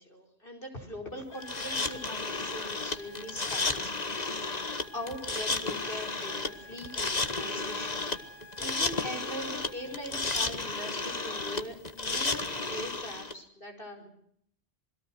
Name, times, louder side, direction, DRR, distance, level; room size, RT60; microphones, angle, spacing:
voice 1, 0.0-8.1 8.6-14.1, equal, 55° left, 4 dB, 5.3 m, -41 dB
sound 1, 1.3-10.2, left 2 dB, 75° left, 2.1 m, -51 dB
sound 2, 1.4-13.3, left 3 dB, 40° left, 1.7 m, -33 dB
27.5 x 21.5 x 6.1 m, 0.68 s
omnidirectional pair, 1.1 m